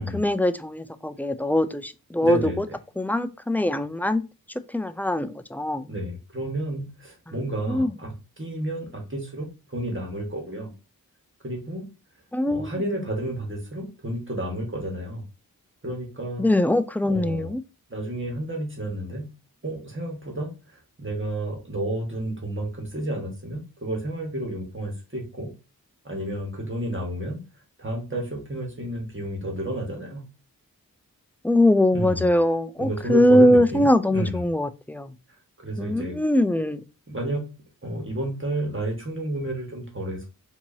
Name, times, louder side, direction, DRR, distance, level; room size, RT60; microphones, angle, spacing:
voice 1, 0.1-2.7 3.0-4.2 4.7-5.9 7.7-7.9 12.3-12.7 16.4-17.6 31.4-35.1 35.8-36.8, left 1 dB, 5° left, 0.3 m, -22 dB
voice 2, 2.2-2.7 5.8-10.7 11.4-11.9 12.5-15.2 15.8-16.5 17.0-17.5 17.9-19.3 19.6-25.5 26.0-27.4 27.8-30.2 31.9-32.3 32.8-33.9 34.1-34.5 35.3-36.2 37.1-40.3, right 1 dB, 35° right, 1.5 m, -31 dB
4.5 x 2.8 x 2.7 m
wide cardioid pair, 50°, 36 cm